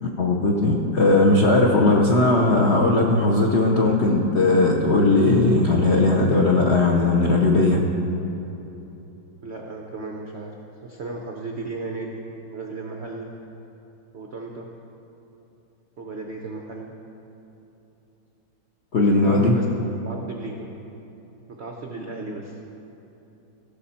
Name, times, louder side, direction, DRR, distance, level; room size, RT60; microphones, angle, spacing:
voice 1, 0.0-7.8 18.9-19.6, left 2 dB, 65° left, -2 dB, 0.7 m, -18 dB
voice 2, 9.4-10.5 10.8-13.3 14.1-14.7 16.0-16.9 19.0-19.6 20.0-20.7 21.6-22.5, right 3 dB, 90° right, 0 dB, 0.5 m, -34 dB
17.5 x 6.6 x 4.3 m, 3.0 s
omnidirectional pair, 2.3 m